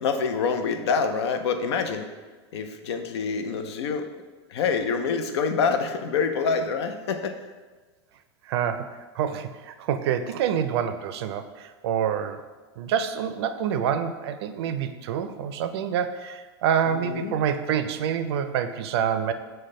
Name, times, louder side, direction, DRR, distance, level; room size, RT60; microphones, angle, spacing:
voice 1, 0.0-2.1 2.5-4.1 4.5-7.4 16.9-17.4, left 5 dB, 75° left, 7 dB, 0.5 m, -26 dB
voice 2, 8.5-12.4 12.8-19.3, right 8 dB, 70° right, 9 dB, 0.4 m, -27 dB
6.4 x 2.2 x 3.7 m, 1.4 s
hypercardioid pair, 120°, 14 cm